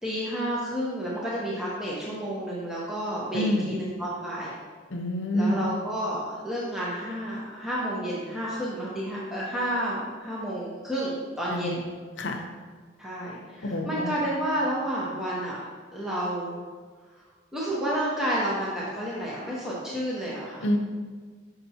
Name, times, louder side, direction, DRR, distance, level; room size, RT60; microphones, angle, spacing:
voice 1, 0.0-4.5 5.3-11.8 13.0-15.6 15.9-16.6 17.5-20.7, equal, 5° right, -7 dB, 0.7 m, -30 dB
voice 2, 3.3-3.8 4.9-5.6 11.5-11.8 12.2-12.4 13.6-14.1 20.6-20.8, left 1 dB, 80° left, 3 dB, 0.7 m, -27 dB
6.0 x 5.7 x 2.8 m, 1.5 s
head